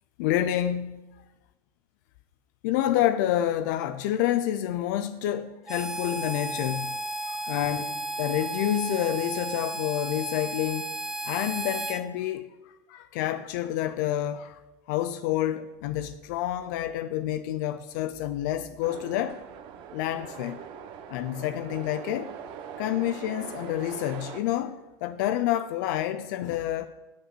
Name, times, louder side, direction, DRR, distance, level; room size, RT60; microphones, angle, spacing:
voice 1, 0.2-1.0 2.6-7.0 7.2-10.9 11.3-12.5 12.9-14.6 14.9-19.4 19.9-20.6 21.1-22.3 22.8-26.9, left 12 dB, 80° left, 0.5 m, -28 dB
Harmonica, 5.7-12.0, right 2 dB, 5° right, 0.7 m, -34 dB
sound 1, 18.8-24.4, right 8 dB, 55° right, 1.0 m, -42 dB
9.5 x 6.5 x 6.2 m
supercardioid pair, 120°, 10 cm